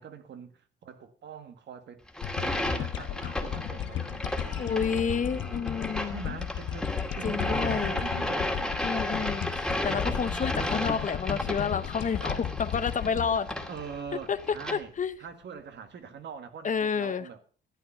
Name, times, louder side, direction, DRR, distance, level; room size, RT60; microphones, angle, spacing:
voice 1, 0.0-2.0 2.4-5.4 6.0-6.9 7.1-8.8 10.2-10.9 13.7-17.4, right 6 dB, 60° right, 1.8 m, -43 dB
sound 1, 2.1-14.7, left 1 dB, 5° left, 2.2 m, -33 dB
sound 2, 2.2-14.7, left 10 dB, 70° left, 1.0 m, -35 dB
voice 2, 4.6-6.2 7.2-8.0 8.8-13.5 14.3-14.4 14.7-15.1 16.6-17.3, left 6 dB, 40° left, 0.8 m, -30 dB
12.5 x 9.0 x 5.6 m
cardioid pair, 90°, 20 cm